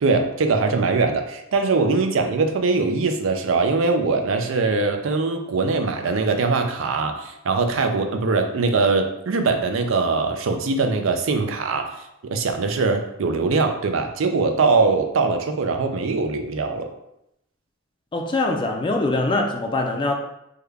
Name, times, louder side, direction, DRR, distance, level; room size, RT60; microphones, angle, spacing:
voice 1, 0.0-11.9 12.3-16.9, right 4 dB, 80° right, 6 dB, 0.4 m, -22 dB
voice 2, 18.1-20.1, left 2 dB, 25° left, 2 dB, 0.4 m, -23 dB
3.6 x 2.2 x 3.3 m, 0.82 s
head